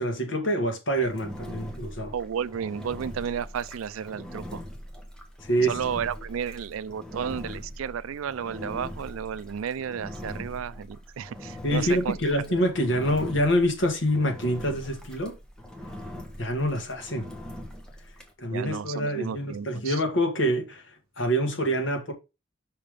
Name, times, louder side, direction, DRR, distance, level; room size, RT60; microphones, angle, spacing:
voice 1, 0.0-2.1 5.4-5.7 11.6-15.4 16.4-17.3 18.4-22.1, equal, 70° left, 1.8 m, -26 dB
Engine, 1.0-18.3, left 1 dB, 5° left, 0.9 m, -41 dB
voice 2, 2.1-4.6 5.7-12.5 18.5-20.0, right 7 dB, 90° right, 0.4 m, -33 dB
5.6 x 3.6 x 5.1 m
head